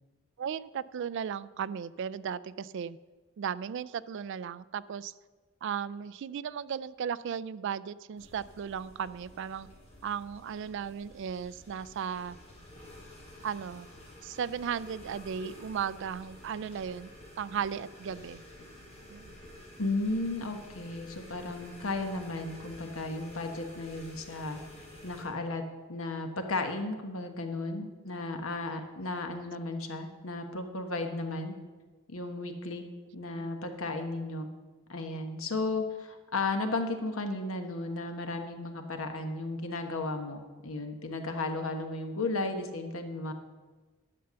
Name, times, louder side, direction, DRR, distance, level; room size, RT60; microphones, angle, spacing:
voice 1, 0.4-3.0 3.4-5.1 5.6-9.7 10.0-12.4 13.4-13.9 14.2-17.1 17.4-18.4 19.1-19.3 24.6-24.7 33.4-33.5, right 7 dB, 60° right, 19 dB, 0.3 m, -36 dB
sound 1, 8.2-25.2, left 1 dB, 30° left, 3.7 m, -51 dB
voice 2, 19.8-24.6 25.0-25.6 25.9-31.5 32.1-32.8 33.1-34.5 34.9-43.3, left 2 dB, 80° left, 6 dB, 1.2 m, -34 dB
11.0 x 6.8 x 6.8 m, 1.3 s
head